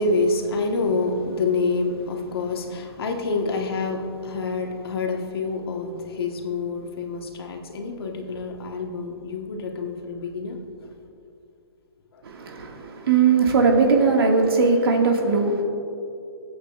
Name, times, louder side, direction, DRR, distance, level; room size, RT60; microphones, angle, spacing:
voice 1, 0.0-10.6 12.1-12.2, left 3 dB, 65° left, 2 dB, 1.5 m, -27 dB
voice 2, 12.2-15.6, right 4 dB, 65° right, 1 dB, 2.0 m, -19 dB
23.5 x 8.4 x 2.5 m, 2.6 s
hypercardioid pair, 160°, 14 cm